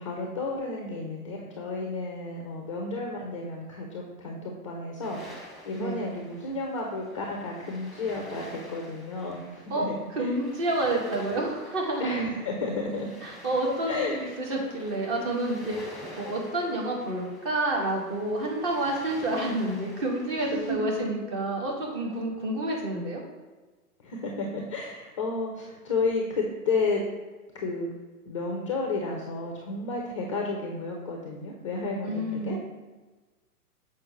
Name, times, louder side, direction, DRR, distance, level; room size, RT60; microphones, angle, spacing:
voice 1, 0.0-5.2 5.7-8.4 8.7-10.3 12.0-13.1 13.9-14.2 20.5-20.9 24.0-27.0 27.5-27.9 28.3-32.6, left 3 dB, 25° left, 0 dB, 0.4 m, -32 dB
sound 1, 5.0-21.0, equal, ahead, 1.0 m, -48 dB
voice 2, 5.7-6.1 9.7-12.2 13.2-23.2 32.0-32.6, right 1 dB, 35° right, -1 dB, 1.6 m, -29 dB
7.0 x 4.7 x 2.9 m, 1.2 s
figure-of-eight pair, 115°, 46 cm